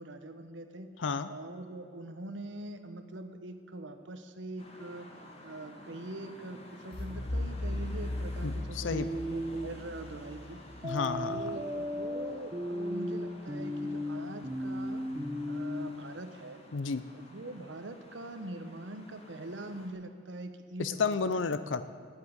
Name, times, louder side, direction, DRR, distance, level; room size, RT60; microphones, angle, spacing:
voice 1, 0.0-0.9 1.3-5.1 5.4-10.6 11.3-15.0 15.5-16.6 17.1-21.6, right 2 dB, 80° right, 8 dB, 1.0 m, -43 dB
sound 1, 4.6-19.9, left 1 dB, 35° left, 1.9 m, -52 dB
sound 2, 6.9-11.8, left 1 dB, 55° left, 0.9 m, -38 dB
voice 2, 8.4-9.1 10.8-11.4 16.7-17.1 20.8-21.8, left 4 dB, 90° left, 13 dB, 0.6 m, -31 dB
sound 3, 8.9-9.7 10.8-15.9, equal, 25° right, 1.2 m, -35 dB
10.5 x 8.3 x 9.5 m, 2.4 s
head